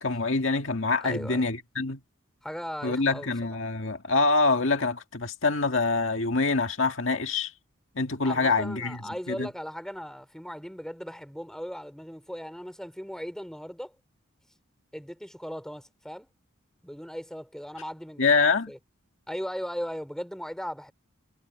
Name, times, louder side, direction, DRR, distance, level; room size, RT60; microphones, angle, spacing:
voice 1, 0.0-2.0 2.8-7.5 8.0-9.0 9.3-9.5 18.2-18.7, left 3 dB, 65° left, 2.0 m, -25 dB
voice 2, 1.0-1.5 2.4-3.3 8.2-13.9 14.9-16.3 16.8-18.8 19.3-20.9, equal, 5° left, 3.4 m, -38 dB
head